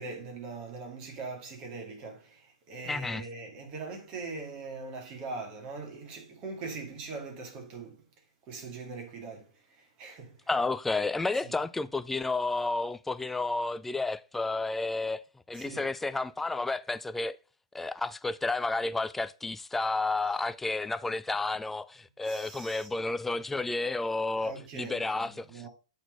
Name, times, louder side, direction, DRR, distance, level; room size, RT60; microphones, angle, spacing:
voice 1, 0.0-8.0 8.5-10.4 11.4-11.5 15.5-15.9 22.3-22.9 24.4-25.7, right 4 dB, 35° right, 2.0 m, -41 dB
voice 2, 2.9-3.3 10.5-17.4 17.7-25.6, left 3 dB, 5° left, 0.3 m, -31 dB
8.0 x 3.9 x 4.8 m
figure-of-eight pair, 110°, 3 cm